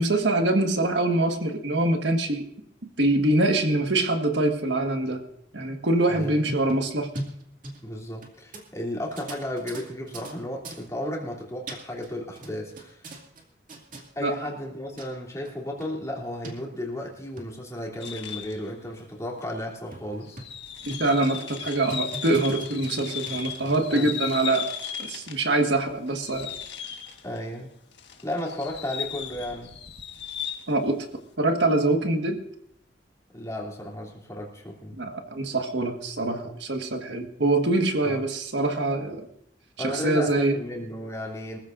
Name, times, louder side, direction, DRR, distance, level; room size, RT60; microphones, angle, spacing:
voice 1, 0.0-2.5 3.0-5.2 5.5-7.1 14.2-14.3 20.8-24.7 25.0-26.5 30.7-31.0 31.4-32.4 35.0-39.3 39.8-40.6, right 2 dB, 80° right, 5 dB, 1.6 m, -24 dB
voice 2, 6.1-6.4 7.8-13.1 14.1-20.4 23.9-24.2 27.2-27.7 28.2-29.7 33.3-35.1 38.0-38.2 39.8-41.6, left 1 dB, 20° left, -2 dB, 3.1 m, -34 dB
sound 1, 6.2-8.3 8.5-8.6 9.1-10.3 10.6-10.8 11.4-12.1 12.4-13.4 13.7-14.0 14.7-14.8 15.0-15.1 15.4-15.5 15.8-15.9 16.4-16.5 17.1-17.5 18.0-18.1 18.4-18.5 19.0-19.1 19.4-19.5 19.9-20.6 20.9-21.2 21.6-23.8, right 1 dB, 50° right, 2.4 m, -38 dB
sound 2, 18.0-18.7 19.4-19.5 20.2-25.5 25.8-27.4 27.9-30.8, left 8 dB, 80° left, 1.6 m, -36 dB
23.5 x 14.5 x 2.6 m, 0.71 s
head